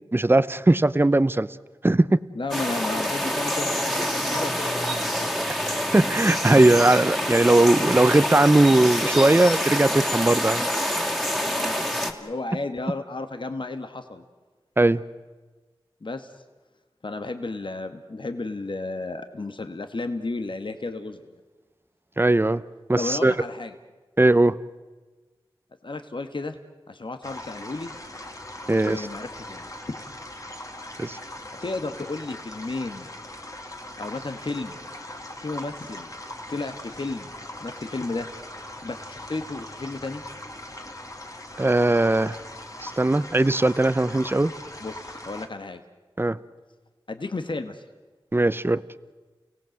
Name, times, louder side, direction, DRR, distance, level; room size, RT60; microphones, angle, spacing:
voice 1, 0.1-1.5 1.8-2.2 5.9-10.6 14.8-15.0 22.2-22.6 22.9-23.3 24.2-24.5 28.7-29.1 31.0-31.2 41.6-42.4 42.8-44.5 46.2-46.4 48.3-48.8, right 2 dB, 25° right, 16 dB, 0.7 m, -19 dB
voice 2, 2.3-5.1 11.5-11.8 12.2-14.2 16.0-16.3 17.0-21.4 23.0-23.8 25.8-26.6 26.9-27.9 28.8-29.7 31.2-31.3 31.6-33.1 34.0-34.8 35.4-36.1 36.5-38.3 38.8-40.2 44.8-45.8 47.1-47.8, left 3 dB, 65° left, 8 dB, 1.3 m, -33 dB
sound 1, 2.5-12.1, equal, 5° left, 2.6 m, -26 dB
sound 2, 27.2-45.5, left 1 dB, 40° left, 2.6 m, -40 dB
30.0 x 18.0 x 7.8 m, 1.3 s
wide cardioid pair, 45°, 9 cm